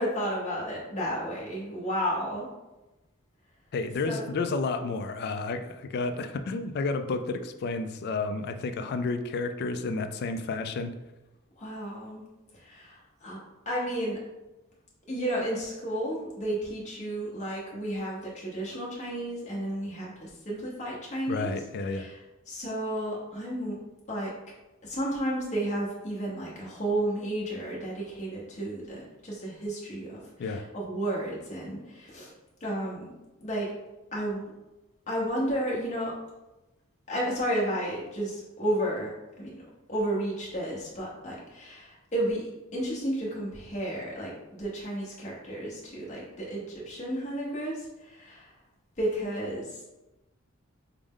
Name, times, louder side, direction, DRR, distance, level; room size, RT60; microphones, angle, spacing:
voice 1, 0.0-2.5 4.0-4.2 11.6-12.2 12.5-13.4 13.7-14.2 15.1-21.5 21.9-22.2 22.5-23.8 24.1-24.3 24.8-32.3 32.6-33.1 33.4-33.7 34.1-34.5 35.1-36.1 37.1-39.6 39.9-48.5 49.0-49.8, right 1 dB, 35° left, -5 dB, 0.8 m, -32 dB
voice 2, 3.7-10.9 21.3-22.1 30.4-30.6, left 3 dB, 50° left, 9 dB, 0.3 m, -31 dB
4.7 x 2.1 x 3.6 m, 1.0 s
head